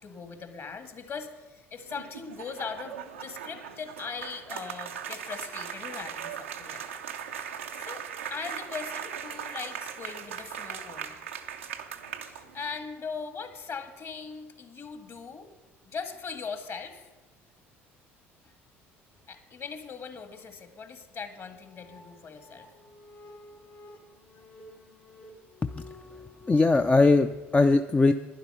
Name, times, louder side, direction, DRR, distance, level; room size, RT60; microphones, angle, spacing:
voice 1, 0.0-6.8 7.8-11.2 12.3-15.5 15.9-17.1 18.4-18.5 19.3-22.7 24.3-24.4, left 5 dB, 45° left, 8 dB, 1.8 m, -40 dB
sound 1, 1.8-12.8, right 8 dB, 90° right, 0.7 m, -39 dB
sound 2, 21.3-26.6, left 2 dB, 85° left, 3.8 m, -51 dB
voice 2, 26.5-28.1, left 3 dB, 20° left, 8 dB, 0.5 m, -21 dB
11.5 x 10.5 x 5.6 m, 1.2 s
hypercardioid pair, 60°, 7 cm